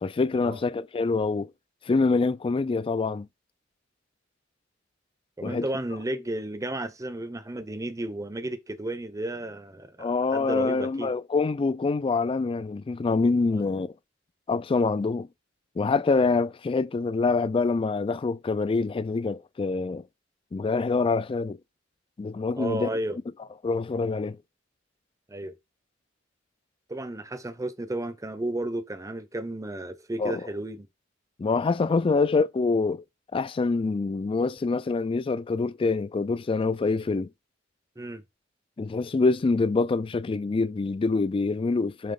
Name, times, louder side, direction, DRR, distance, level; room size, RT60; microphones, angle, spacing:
voice 1, 0.0-1.5 1.9-3.3 5.4-5.6 10.0-13.9 14.5-15.3 15.8-20.0 20.5-21.6 22.2-23.0 23.6-24.4 30.2-30.4 31.4-33.0 33.3-37.3 38.8-42.1, left 4 dB, 25° left, 0.3 m, -25 dB
voice 2, 5.4-11.1 13.5-13.7 22.6-23.2 25.3-25.5 26.9-30.9 38.0-38.2, right 1 dB, 15° right, 0.7 m, -33 dB
7.6 x 3.0 x 5.3 m
head